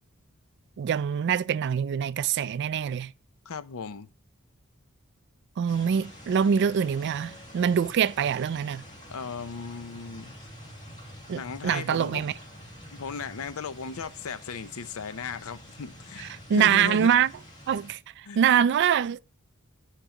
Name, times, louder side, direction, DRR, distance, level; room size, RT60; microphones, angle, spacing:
voice 1, 0.8-3.1 5.6-8.8 11.3-12.3 16.2-17.3 17.7-19.2, right 8 dB, 55° right, 0.3 m, -24 dB
voice 2, 3.5-4.1 9.1-10.4 11.3-12.3 12.9-17.1 18.2-18.5, left 5 dB, 75° left, 0.6 m, -36 dB
sound 1, 5.7-17.9, equal, 35° left, 2.2 m, -47 dB
10.0 x 4.6 x 2.9 m
head